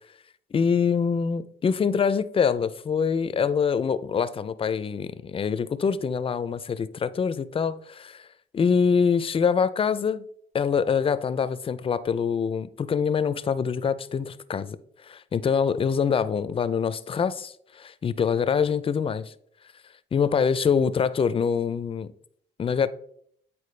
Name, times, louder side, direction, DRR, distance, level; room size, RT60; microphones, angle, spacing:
voice 1, 0.5-8.3 8.5-10.2 10.5-14.8 15.0-17.5 18.0-19.3 20.1-22.1 22.6-22.9, left 6 dB, 30° left, 0.4 m, -24 dB
8.5 x 4.3 x 3.2 m
cardioid pair, 90°, 20 cm